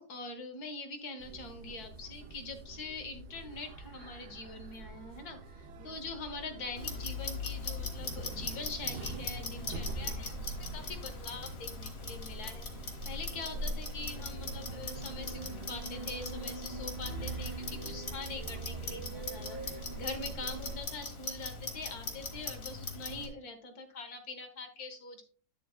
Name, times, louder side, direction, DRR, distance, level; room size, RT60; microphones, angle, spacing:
voice 1, 0.0-25.2, left 3 dB, 65° left, 6 dB, 1.7 m, -44 dB
sound 1, 1.2-20.8, right 2 dB, 75° right, 1.5 m, -43 dB
Clock, 6.8-23.3, left 3 dB, 40° left, 1.5 m, -41 dB
9.2 x 7.3 x 2.4 m, 0.39 s
omnidirectional pair, 1.8 m